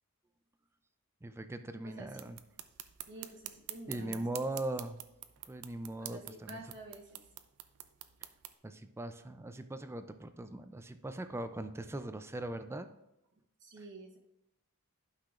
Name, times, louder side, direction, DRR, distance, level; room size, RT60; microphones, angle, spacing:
voice 1, 1.2-2.4 3.9-5.0 5.5-6.6 8.6-12.9, right 1 dB, 10° right, 9 dB, 0.3 m, -40 dB
voice 2, 1.8-2.3 3.1-4.5 6.0-7.2 13.6-14.2, right 2 dB, 55° right, -1 dB, 1.0 m, -50 dB
sound 1, 2.1-8.5, right 13 dB, 75° right, 0.5 m, -48 dB
11.5 x 5.8 x 2.5 m, 0.88 s
head